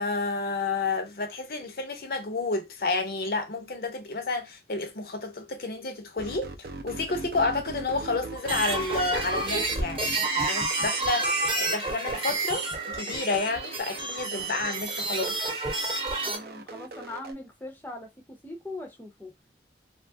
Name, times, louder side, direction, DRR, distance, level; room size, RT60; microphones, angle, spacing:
voice 1, 0.0-15.4, left 3 dB, 55° left, 0.6 m, -30 dB
sound 1, 6.2-17.3, right 3 dB, 60° right, 0.4 m, -40 dB
sound 2, 8.3-16.4, right 2 dB, 30° right, 0.8 m, -29 dB
voice 2, 16.2-19.3, left 2 dB, 10° left, 0.5 m, -41 dB
2.7 x 2.3 x 2.6 m
head